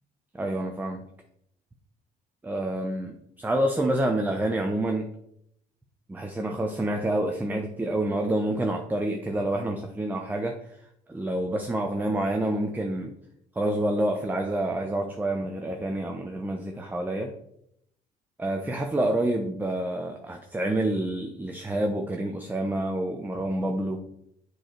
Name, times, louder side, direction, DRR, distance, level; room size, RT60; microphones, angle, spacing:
voice 1, 0.3-1.0 2.4-5.1 6.1-10.6 11.1-13.1 13.6-17.3 18.4-24.0, right 1 dB, 10° right, 3 dB, 0.8 m, -28 dB
7.6 x 4.8 x 4.5 m, 0.75 s
cardioid pair, 110°, 17 cm